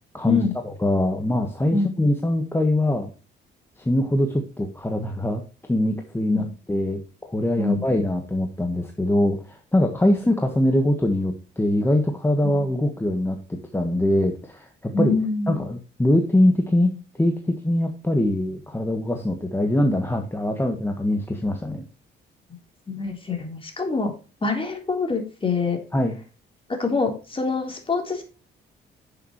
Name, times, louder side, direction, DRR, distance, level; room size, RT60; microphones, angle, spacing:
voice 1, 0.2-0.5 1.7-1.9 6.3-6.4 7.6-7.8 10.0-10.2 12.4-12.6 14.9-15.6 22.9-24.1 24.4-25.8 26.8-28.2, left 3 dB, 25° left, 3 dB, 3.6 m, -25 dB
voice 2, 0.8-3.1 3.8-5.4 5.7-15.2 15.5-21.8 25.9-26.2, left 1 dB, 10° left, 4 dB, 1.4 m, -23 dB
10.0 x 6.9 x 3.1 m, 0.33 s
cardioid pair, 90°, 20 cm